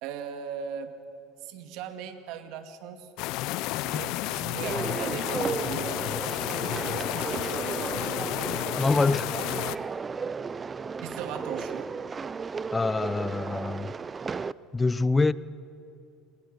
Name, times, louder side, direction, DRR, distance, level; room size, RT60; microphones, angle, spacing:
voice 1, 0.0-0.9 1.4-3.1 3.8-6.0 7.3-7.7 11.0-11.9, right 8 dB, 70° right, 2.1 m, -38 dB
sound 1, 3.2-9.8, left 17 dB, 70° left, 0.6 m, -31 dB
sound 2, 4.6-14.5, right 5 dB, 25° right, 0.5 m, -34 dB
voice 2, 8.8-9.4 12.7-13.9 14.7-15.3, left 3 dB, 20° left, 0.5 m, -25 dB
27.5 x 21.5 x 6.7 m
supercardioid pair, 90°, 0 cm